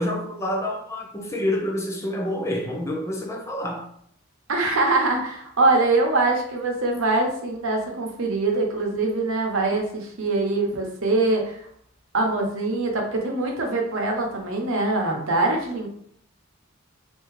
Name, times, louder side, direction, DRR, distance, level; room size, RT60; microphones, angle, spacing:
voice 1, 0.0-3.9, left 1 dB, 15° left, 0.6 m, -28 dB
voice 2, 4.5-11.6 12.1-15.9, right 2 dB, 85° right, 0.9 m, -23 dB
3.5 x 2.7 x 3.2 m
head